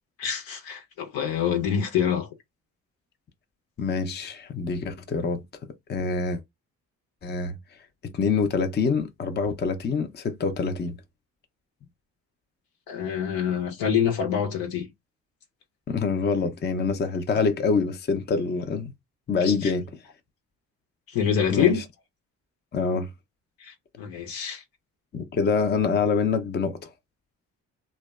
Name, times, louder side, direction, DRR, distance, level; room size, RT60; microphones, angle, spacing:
voice 1, 0.2-2.3 12.9-14.9 19.4-19.7 21.1-21.8 23.6-24.6, left 8 dB, 75° left, 0.8 m, -26 dB
voice 2, 3.8-5.4 5.9-6.4 7.2-7.6 8.1-11.0 15.9-18.9 19.3-19.9 21.5-21.8 22.7-23.1 25.1-26.9, left 5 dB, 30° left, 0.5 m, -25 dB
2.6 x 2.1 x 2.3 m
supercardioid pair, 55°, 36 cm